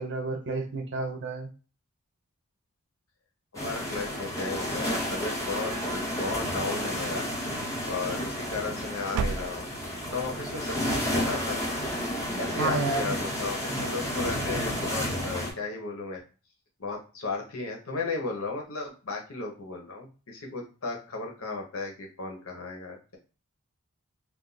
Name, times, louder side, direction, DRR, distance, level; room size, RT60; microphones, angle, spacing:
voice 1, 0.0-1.5 12.6-13.2, right 3 dB, 55° right, 2 dB, 0.7 m, -30 dB
voice 2, 3.5-7.2 7.9-9.7 10.1-11.6 12.4-16.2 16.8-23.2, left 3 dB, 65° left, 1 dB, 1.0 m, -35 dB
sound 1, 3.5-15.5, equal, 15° left, 0.8 m, -31 dB
sound 2, 5.0-6.1 6.6-7.3 8.2-8.7 9.1-10.0, right 5 dB, 80° right, 0.3 m, -35 dB
2.6 x 2.5 x 3.9 m, 0.35 s
head